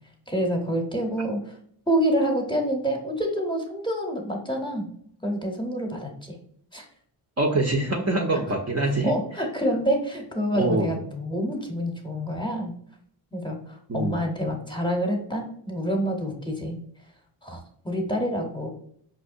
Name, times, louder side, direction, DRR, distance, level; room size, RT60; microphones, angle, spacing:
voice 1, 0.3-1.6 1.9-4.9 5.2-6.4 6.7-6.9 8.3-8.4 9.0-12.7 13.3-16.8 17.4-18.7, equal, 10° left, 2 dB, 0.9 m, -27 dB
voice 2, 7.4-9.1 10.6-10.9 13.9-14.1, right 2 dB, 30° right, 1 dB, 0.6 m, -24 dB
5.1 x 2.1 x 2.6 m, 0.64 s
supercardioid pair, 40°, 50 cm